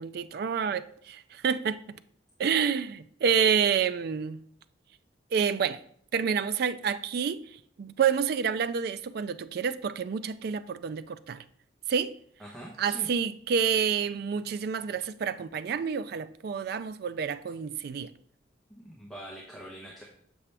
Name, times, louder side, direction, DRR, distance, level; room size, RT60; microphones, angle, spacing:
voice 1, 0.0-2.0 2.4-4.4 5.3-5.8 6.1-11.4 11.9-12.1 12.8-18.1, right 7 dB, 55° right, 0.3 m, -28 dB
voice 2, 12.4-13.1 18.7-20.0, equal, ahead, 0.9 m, -44 dB
6.9 x 5.9 x 3.3 m
head